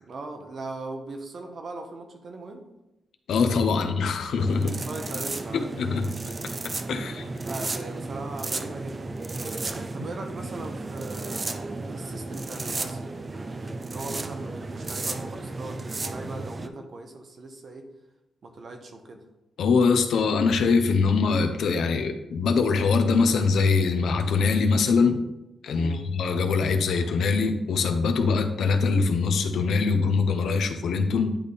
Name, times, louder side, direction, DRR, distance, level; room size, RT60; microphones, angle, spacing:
voice 1, 0.0-2.7 4.7-5.7 6.9-9.1 9.7-11.5 11.9-13.1 13.8-17.9 18.4-19.2 25.7-26.1, right 2 dB, 40° right, 4 dB, 0.9 m, -39 dB
voice 2, 3.3-4.8 5.5-6.1 6.9-7.2 19.6-25.2 25.6-31.4, left 4 dB, 70° left, 7 dB, 0.7 m, -23 dB
sound 1, 4.4-16.7, right 3 dB, 25° right, 0.4 m, -34 dB
10.0 x 3.4 x 4.1 m, 0.91 s
wide cardioid pair, 175°, 0 cm